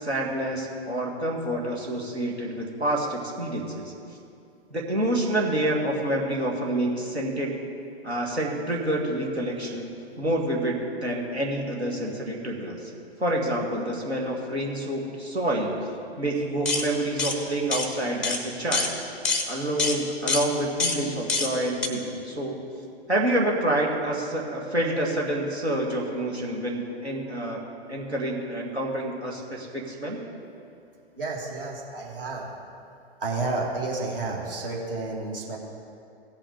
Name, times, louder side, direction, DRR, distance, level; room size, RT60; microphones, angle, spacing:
voice 1, 0.0-3.9 4.7-7.5 8.0-9.9 10.2-12.9 13.2-15.7 16.2-18.9 19.5-22.6 23.1-27.6 27.9-30.2, right 1 dB, 85° right, -2 dB, 2.0 m, -28 dB
sound 1, 16.6-16.9 17.2-17.4 17.7-17.9 18.2-18.4 18.7-18.9 19.2-19.5 19.8-20.0 20.3-20.5 20.8-21.0 21.3-21.5 21.8-21.9, left 4 dB, 5° left, 0.5 m, -25 dB
voice 2, 31.2-32.5 33.2-35.6, right 3 dB, 55° right, -1 dB, 2.2 m, -31 dB
16.5 x 5.7 x 4.8 m, 2.5 s
figure-of-eight pair, 115°, 32 cm